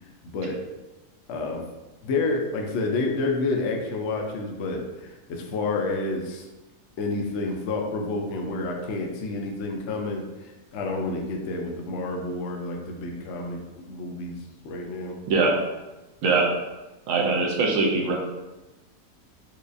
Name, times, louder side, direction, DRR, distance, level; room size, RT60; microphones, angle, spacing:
voice 1, 0.2-0.6 1.3-1.7 2.0-6.5 7.0-14.4 14.6-15.2, left 3 dB, 75° left, 1 dB, 0.6 m, -29 dB
voice 2, 16.2-16.5 17.1-18.1, right 3 dB, 65° right, -1 dB, 0.9 m, -22 dB
4.6 x 2.3 x 2.5 m, 1.1 s
omnidirectional pair, 1.7 m